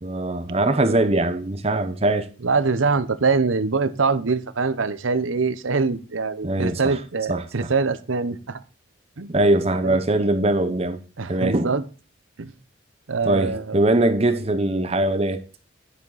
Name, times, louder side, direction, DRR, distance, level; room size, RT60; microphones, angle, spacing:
voice 1, 0.0-2.3 6.4-7.0 7.3-7.7 9.3-11.0 11.3-11.8 13.3-15.4, right 2 dB, 30° right, 0.8 m, -21 dB
voice 2, 2.4-8.6 9.2-9.4 9.8-10.0 11.2-11.8 12.4-12.5 13.1-13.8, right 4 dB, 90° right, 0.8 m, -23 dB
10.5 x 7.4 x 4.0 m
head